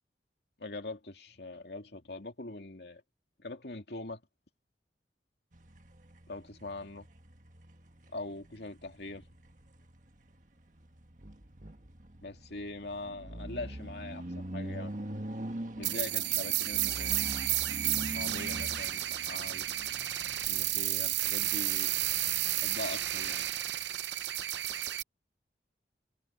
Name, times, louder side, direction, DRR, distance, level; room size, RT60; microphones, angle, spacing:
voice 1, 0.6-3.0 3.4-4.2 6.3-7.1 8.1-9.3 12.2-15.0 15.8-17.3 18.1-19.7 20.5-22.0 22.6-23.5, left 2 dB, 70° left, 2.4 m, -42 dB
sound 1, 5.5-22.7, right 1 dB, 45° right, 1.6 m, -44 dB
sound 2, 15.8-25.0, right 14 dB, 90° right, 0.8 m, -32 dB
head